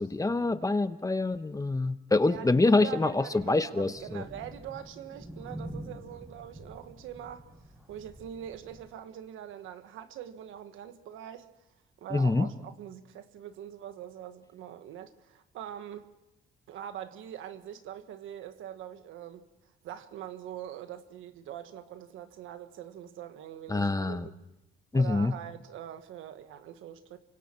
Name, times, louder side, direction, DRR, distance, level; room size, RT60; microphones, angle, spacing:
voice 1, 0.0-4.2 12.1-12.5 23.7-24.3 24.9-25.4, left 3 dB, 15° left, 1.0 m, -26 dB
voice 2, 2.2-7.5 7.9-11.5 12.0-16.1 16.7-19.5 19.8-24.4 24.9-27.2, right 10 dB, 85° right, 1.5 m, -43 dB
Thunder, 3.9-8.9, right 1 dB, 15° right, 5.8 m, -46 dB
28.5 x 24.5 x 4.5 m
cardioid pair, 90°, 20 cm